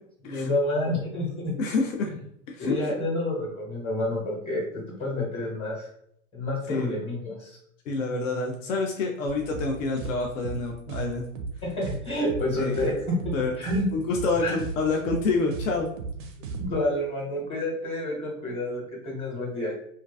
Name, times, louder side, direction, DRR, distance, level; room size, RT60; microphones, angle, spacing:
voice 1, 0.2-1.5 2.6-5.9 6.3-7.5 11.6-13.8 14.4-14.5 16.5-19.7, left 1 dB, 15° left, -3 dB, 0.9 m, -29 dB
voice 2, 1.6-2.1 2.5-2.9 6.7-6.9 7.9-11.2 12.5-12.7 13.3-13.5 13.9-15.9, left 3 dB, 65° left, 2 dB, 0.5 m, -27 dB
sound 1, 9.3-16.7, right 4 dB, 40° right, 0.4 m, -35 dB
2.4 x 2.2 x 2.3 m, 0.70 s
hypercardioid pair, 105°, 42 cm